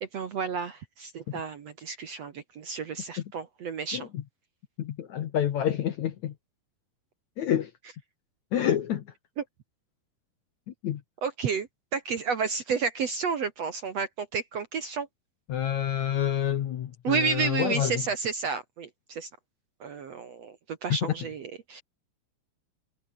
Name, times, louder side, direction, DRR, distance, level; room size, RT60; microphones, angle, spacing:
voice 1, 0.0-4.1 11.2-15.1 17.0-19.3 19.8-21.8, right 5 dB, 55° right, 2.0 m, -31 dB
voice 2, 3.9-4.2 4.8-6.3 7.4-7.7 8.5-9.0 10.7-11.0 15.5-18.0, left 10 dB, 60° left, 2.1 m, -28 dB
omnidirectional pair, 4.6 m